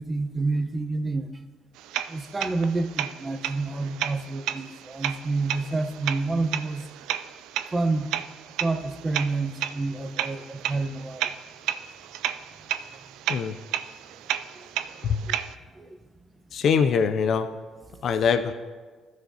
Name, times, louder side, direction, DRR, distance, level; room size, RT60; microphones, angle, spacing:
voice 1, 0.0-1.3 2.1-6.9 7.7-8.1 8.6-11.3 14.6-14.7 15.7-15.9, right 3 dB, 30° right, 8 dB, 0.9 m, -28 dB
sound 1, 1.8-15.5, right 11 dB, 75° right, 0.3 m, -33 dB
voice 2, 16.5-17.5 18.0-18.5, left 6 dB, 60° left, 9 dB, 0.4 m, -23 dB
15.5 x 6.3 x 2.8 m, 1.5 s
hypercardioid pair, 55°, 0 cm